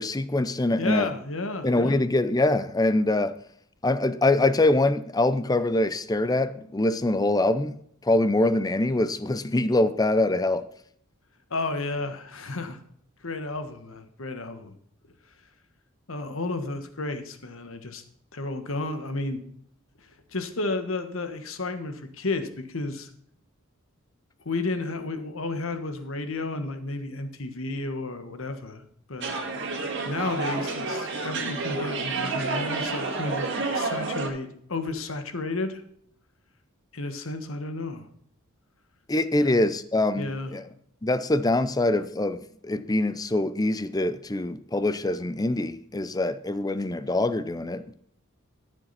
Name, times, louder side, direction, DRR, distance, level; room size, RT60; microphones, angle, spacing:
voice 1, 0.0-1.1 1.6-3.4 3.8-10.7 39.1-40.7 41.0-47.9, left 2 dB, 20° left, 0.6 m, -24 dB
voice 2, 0.8-2.0 11.5-12.8 13.2-14.7 16.1-18.0 18.3-19.4 20.3-23.1 24.4-28.8 29.1-29.4 30.0-35.8 36.9-38.1 39.3-39.6 40.2-40.5, left 2 dB, 70° left, 1.4 m, -32 dB
sound 1, 29.2-34.3, right 3 dB, 60° right, 2.1 m, -29 dB
13.0 x 7.3 x 4.2 m
head